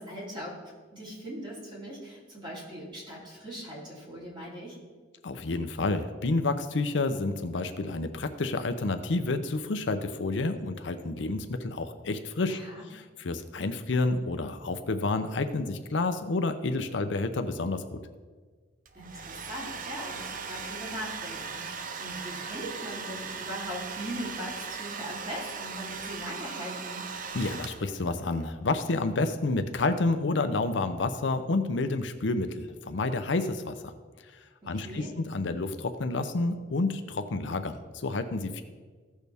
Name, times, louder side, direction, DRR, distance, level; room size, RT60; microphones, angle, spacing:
voice 1, 0.0-4.8 12.5-12.9 18.9-27.1 34.6-35.1, equal, 25° right, -6 dB, 3.3 m, -40 dB
voice 2, 5.2-12.6 12.9-18.0 27.3-33.9 34.7-38.6, left 3 dB, 75° left, 9 dB, 0.6 m, -29 dB
Domestic sounds home sounds, 18.9-28.1, right 5 dB, 45° right, 0.6 m, -38 dB
15.5 x 6.4 x 3.5 m, 1.5 s
head